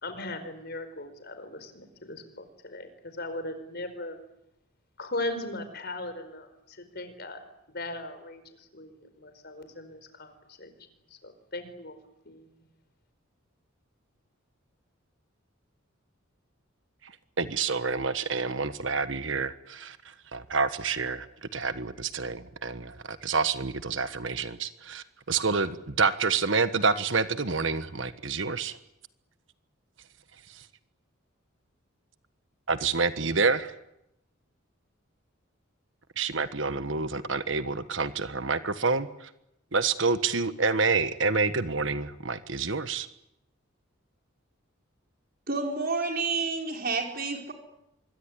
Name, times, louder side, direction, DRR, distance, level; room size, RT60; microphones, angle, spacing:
voice 1, 0.0-4.2 5.0-7.4 7.7-10.7 11.1-11.9 12.2-12.4, left 2 dB, 50° left, 9 dB, 4.8 m, -38 dB
voice 2, 17.4-20.0 20.3-28.8 32.7-33.7 36.2-39.3 39.7-43.1, right 4 dB, 65° right, 11 dB, 1.4 m, -28 dB
voice 3, 45.5-47.5, right 4 dB, 45° right, 3 dB, 5.2 m, -29 dB
25.5 x 22.5 x 10.0 m, 0.82 s
head